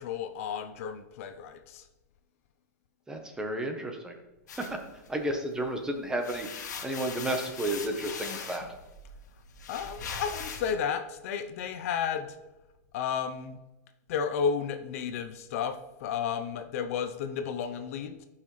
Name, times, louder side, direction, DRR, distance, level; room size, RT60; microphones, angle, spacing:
voice 1, 0.0-1.8 9.7-12.4 12.9-13.6 14.1-18.3, left 7 dB, 55° left, 8 dB, 0.7 m, -32 dB
voice 2, 3.1-4.1 4.7-4.8 5.1-6.5 6.8-8.7, right 1 dB, 5° right, 4 dB, 1.0 m, -32 dB
sound 1, 4.5-5.7 6.0-10.7, left 5 dB, 85° left, 1.6 m, -40 dB
13.5 x 5.8 x 3.2 m, 1.1 s
supercardioid pair, 150°, 9 cm